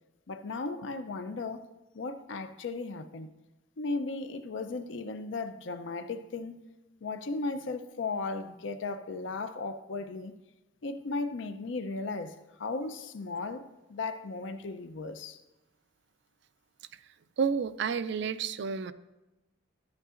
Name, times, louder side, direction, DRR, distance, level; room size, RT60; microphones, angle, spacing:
voice 1, 0.3-1.7 1.9-3.3 3.8-6.6 7.0-10.4 10.8-15.4, left 3 dB, 65° left, 0.5 m, -36 dB
voice 2, 17.4-18.9, right 6 dB, 60° right, 0.4 m, -30 dB
13.0 x 8.9 x 2.5 m
head